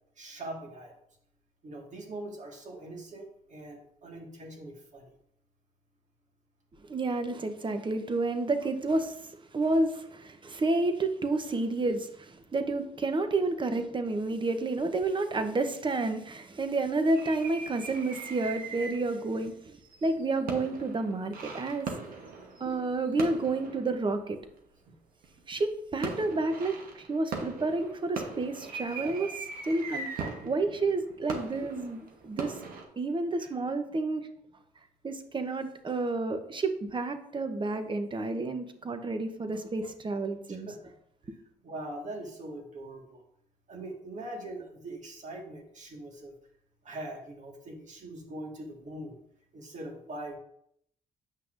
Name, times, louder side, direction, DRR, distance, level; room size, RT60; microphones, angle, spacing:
voice 1, 0.2-1.0 1.6-5.1 29.0-29.3 33.4-33.5 40.7-40.9 41.6-43.2 43.7-46.3 46.8-49.2 49.5-50.4, right 1 dB, 55° right, 1.8 m, -42 dB
voice 2, 6.9-21.9 22.6-24.4 25.5-29.3 29.7-32.6 33.0-34.3 35.0-40.7, right 2 dB, 35° right, 0.9 m, -30 dB
sound 1, 17.1-19.2 19.7-24.6 25.2-25.6 26.0-32.8, right 4 dB, 75° right, 1.1 m, -40 dB
8.2 x 5.7 x 2.6 m
supercardioid pair, 65°, 15 cm